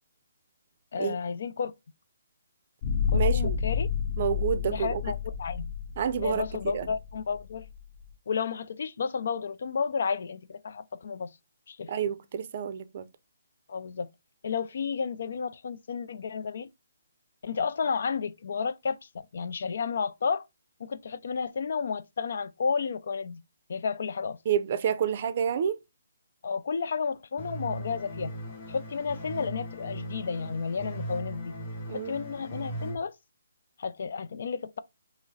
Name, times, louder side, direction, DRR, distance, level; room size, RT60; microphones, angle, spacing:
voice 1, 0.9-1.7 3.1-3.9 4.7-5.7 6.2-7.7 8.3-11.3 11.7-11.9 13.7-14.1 14.4-16.7 17.4-20.5 20.8-23.4 23.7-24.4 26.4-28.3 28.7-31.5 31.9-33.1 33.8-34.8, left 5 dB, 60° left, 0.4 m, -32 dB
sound 1, 2.8-8.0, left 7 dB, 35° left, 1.2 m, -30 dB
voice 2, 3.1-3.6 4.2-5.0 6.0-6.5 6.7-6.9 11.9-13.1 24.5-25.8 31.9-32.1, right 8 dB, 40° right, 0.5 m, -29 dB
sound 2, 27.4-32.9, right 1 dB, 15° left, 2.2 m, -38 dB
4.8 x 2.0 x 3.9 m
hypercardioid pair, 165°, 0 cm